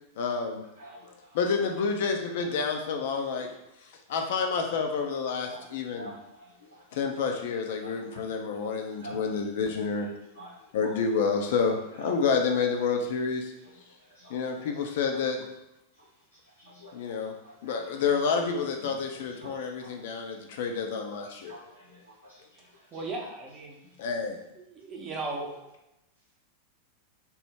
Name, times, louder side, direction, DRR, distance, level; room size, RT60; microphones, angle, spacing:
voice 1, 0.2-0.6 1.3-3.5 4.1-6.1 6.9-10.1 10.7-13.5 14.3-15.4 16.9-17.3 17.6-21.5 24.0-24.4, left 5 dB, 55° left, 3 dB, 0.4 m, -29 dB
voice 2, 0.8-1.4 2.4-2.5 3.3-3.4 3.8-4.0 4.4-4.5 5.5-5.7 6.0-6.8 7.3-7.4 7.8-8.3 9.0-9.1 9.9-10.0 10.3-10.5 10.8-11.0 11.9-12.1 13.9-14.3 15.1-15.2 15.9-16.0 16.3-16.9 17.2-17.7 18.3-18.4 18.9-19.0 19.3-20.6 20.9-21.0 21.3-23.1 23.8-23.9, right 1 dB, 85° left, -10 dB, 0.8 m, -49 dB
voice 3, 22.9-23.8 24.5-25.7, right 2 dB, 25° right, -1 dB, 0.7 m, -37 dB
2.8 x 2.1 x 3.5 m, 0.90 s
figure-of-eight pair, 90°, 0 cm